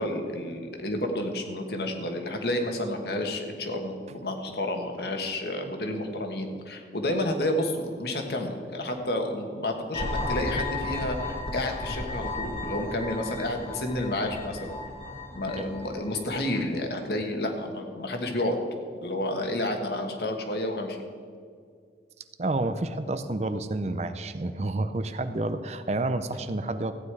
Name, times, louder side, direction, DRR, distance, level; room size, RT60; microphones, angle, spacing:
voice 1, 0.0-14.7 15.3-18.6 19.0-21.0, left 1 dB, 65° left, 4 dB, 1.5 m, -30 dB
sound 1, 9.9-16.7, left 2 dB, 35° left, 1.5 m, -34 dB
voice 2, 22.4-26.9, right 2 dB, 40° right, 11 dB, 0.5 m, -29 dB
14.5 x 9.4 x 4.8 m, 2.1 s
head